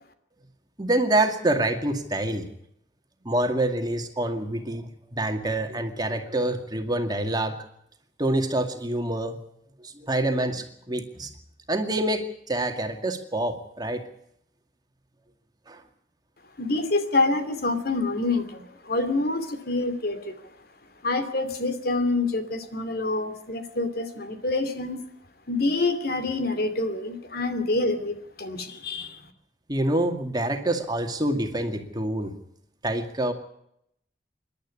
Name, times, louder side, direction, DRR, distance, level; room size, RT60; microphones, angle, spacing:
voice 1, 0.8-2.5 3.2-7.6 8.2-9.4 9.8-11.3 11.7-14.0 15.7-15.8 29.7-32.3 32.8-33.3, right 1 dB, 25° right, 5 dB, 2.2 m, -26 dB
voice 2, 16.6-20.5 21.0-25.0 25.5-29.2, left 2 dB, 60° left, 9 dB, 2.7 m, -27 dB
27.0 x 12.0 x 8.4 m, 0.76 s
head